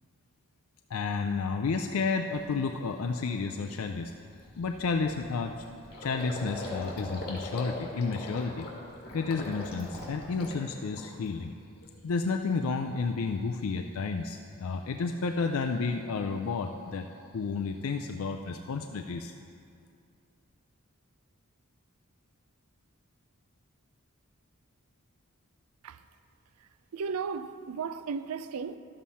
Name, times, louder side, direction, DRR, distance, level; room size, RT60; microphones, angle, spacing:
voice 1, 0.9-4.1 4.6-5.6 6.0-8.7 9.1-11.5 12.0-17.1 17.3-19.3, left 4 dB, 70° left, 0.4 m, -31 dB
Gurgling, 2.3-2.6 3.0-3.1 3.4-11.4 11.8-12.4, left 1 dB, 45° left, 2.0 m, -42 dB
voice 2, 26.9-28.8, right 5 dB, 90° right, 0.4 m, -35 dB
12.0 x 7.4 x 4.2 m
head